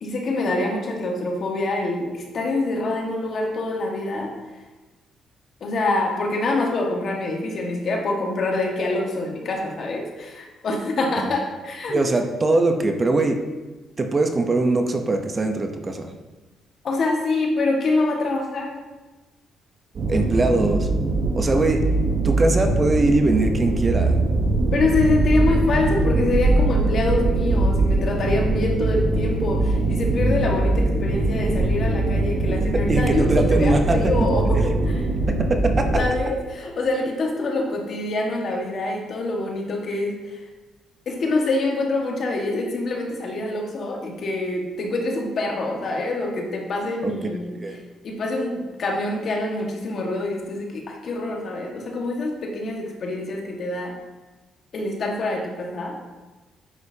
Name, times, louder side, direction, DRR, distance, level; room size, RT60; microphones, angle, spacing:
voice 1, 0.0-4.3 5.6-12.0 16.8-18.8 24.7-35.1 35.9-40.4 41.1-47.6 48.0-53.9 54.7-56.0, left 2 dB, 55° left, 1 dB, 1.6 m, -25 dB
voice 2, 11.9-13.4 14.0-16.1 20.1-20.9 21.4-21.8 22.2-24.2 32.7-34.0 35.3-35.9 47.0-47.3 47.6-47.8, right 2 dB, 30° right, 5 dB, 0.8 m, -21 dB
sound 1, 19.9-36.0, right 2 dB, 55° right, 1.1 m, -22 dB
9.7 x 6.4 x 2.8 m, 1.2 s
cardioid pair, 90°, 0 cm